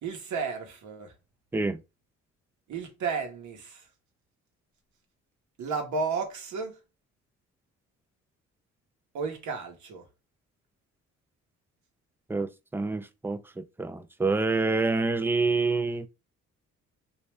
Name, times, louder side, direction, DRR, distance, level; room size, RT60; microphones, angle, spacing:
voice 1, 0.0-1.1 2.7-3.8 5.6-6.8 9.1-10.0, right 5 dB, 75° right, 1.2 m, -33 dB
voice 2, 12.3-16.1, right 3 dB, 10° right, 0.4 m, -27 dB
3.0 x 2.7 x 3.3 m
cardioid pair, 90°, 30 cm